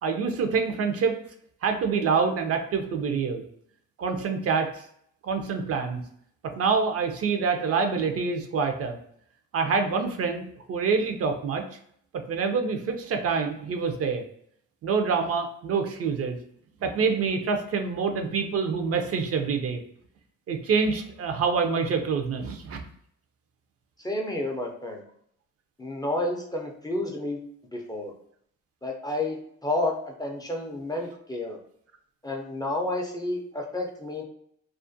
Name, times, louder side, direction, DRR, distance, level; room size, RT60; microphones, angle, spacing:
voice 1, 0.0-1.2 1.6-3.4 4.0-4.8 5.2-6.0 6.5-9.0 9.5-11.6 12.1-14.2 14.8-16.4 16.8-19.8 20.5-22.8, right 5 dB, 50° right, 5 dB, 0.4 m, -26 dB
voice 2, 24.0-25.0 25.8-27.4 27.7-28.1 28.8-31.6 32.2-34.2, left 1 dB, 15° left, 0 dB, 0.4 m, -30 dB
2.4 x 2.1 x 2.5 m, 0.68 s
cardioid pair, 90°, 30 cm